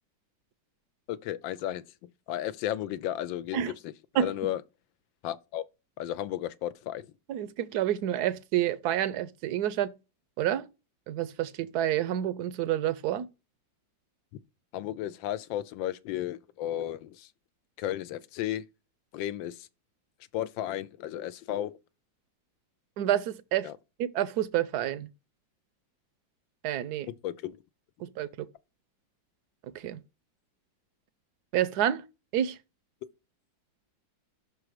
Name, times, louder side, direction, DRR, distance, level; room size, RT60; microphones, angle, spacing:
voice 1, 1.1-1.8 2.3-4.6 5.2-5.6 6.0-7.1 14.7-17.3 17.8-18.6 19.1-19.7 20.3-21.7 23.6-23.8 27.1-27.6, left 12 dB, 85° left, 1.4 m, -34 dB
voice 2, 7.3-9.9 10.4-10.6 11.1-13.3 23.0-23.7 24.0-25.1 26.6-27.1 28.2-28.3 29.7-30.0 31.5-32.0 32.3-32.6, right 11 dB, 70° right, 1.0 m, -28 dB
6.1 x 4.7 x 4.9 m
omnidirectional pair, 2.0 m